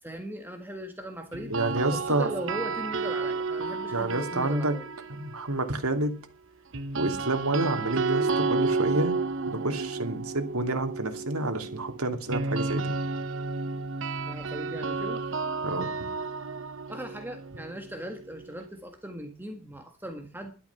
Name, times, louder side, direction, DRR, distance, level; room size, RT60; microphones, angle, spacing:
voice 1, 0.0-1.5 1.9-4.9 14.2-15.2 16.9-20.5, equal, 10° right, 5 dB, 1.6 m, -39 dB
sound 1, 1.3-5.5 6.7-18.6, right 4 dB, 60° right, 0.8 m, -32 dB
voice 2, 1.5-2.3 3.9-4.7 5.1-6.2 7.0-9.1 9.5-13.0 15.6-16.1, right 2 dB, 85° right, 5 dB, 2.7 m, -29 dB
12.0 x 12.0 x 5.9 m, 0.33 s
head